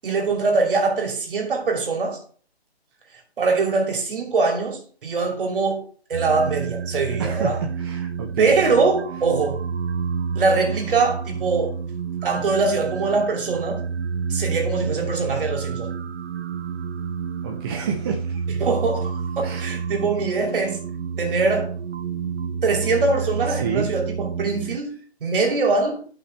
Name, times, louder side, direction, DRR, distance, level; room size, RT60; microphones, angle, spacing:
voice 1, 0.0-2.2 3.4-5.8 6.1-7.6 8.4-9.6 10.3-11.8 12.2-13.9 14.3-15.9 18.6-20.8 21.2-21.7 22.6-26.1, right 3 dB, 55° right, 2.8 m, -23 dB
sound 1, 6.1-24.8, right 6 dB, 85° right, 0.7 m, -29 dB
voice 2, 7.2-8.5 17.4-18.4 19.4-19.7 23.5-23.9, right 6 dB, 20° right, 0.7 m, -29 dB
11.0 x 5.7 x 3.3 m
hypercardioid pair, 150°, 32 cm